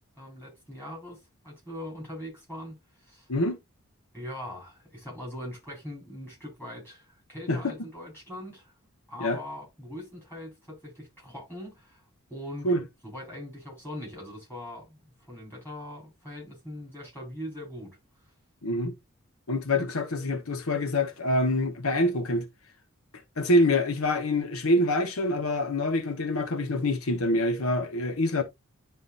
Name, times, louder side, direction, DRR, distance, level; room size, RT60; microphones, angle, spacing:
voice 1, 0.2-3.3 4.1-8.7 9.1-12.0 12.3-12.7 13.0-18.0, left 1 dB, 10° left, 4.6 m, -41 dB
voice 2, 18.6-18.9 19.5-22.5 23.4-28.4, left 1 dB, 85° left, 1.0 m, -25 dB
11.0 x 3.7 x 2.5 m
head